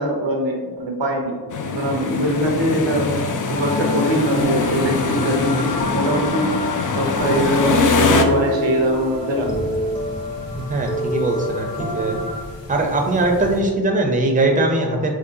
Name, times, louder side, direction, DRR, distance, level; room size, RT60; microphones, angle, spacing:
voice 1, 0.0-1.4 1.7-3.2 3.5-5.6 5.9-6.6 6.9-9.5, equal, 85° right, 1 dB, 0.7 m, -21 dB
sound 1, 1.5-8.2, left 4 dB, 50° left, 0.4 m, -22 dB
sound 2, 3.5-12.4, left 1 dB, 15° left, 0.8 m, -28 dB
sound 3, 7.2-13.6, left 1 dB, 85° left, 0.9 m, -38 dB
voice 2, 10.6-12.2 12.7-15.1, right 2 dB, 20° right, 2 dB, 0.5 m, -20 dB
3.9 x 3.1 x 2.7 m, 1.5 s
wide cardioid pair, 50°, 43 cm